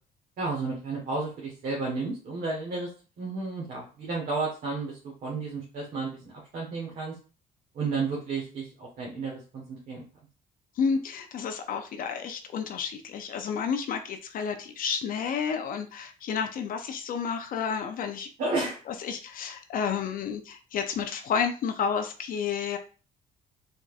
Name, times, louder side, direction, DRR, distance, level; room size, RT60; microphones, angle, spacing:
voice 1, 0.4-2.9 3.2-7.1 7.7-10.0 18.4-18.8, right 3 dB, 55° right, -3 dB, 1.3 m, -32 dB
voice 2, 10.8-18.3 18.9-22.8, left 6 dB, 55° left, 7 dB, 0.5 m, -31 dB
4.1 x 3.5 x 2.4 m, 0.36 s
cardioid pair, 110°, 17 cm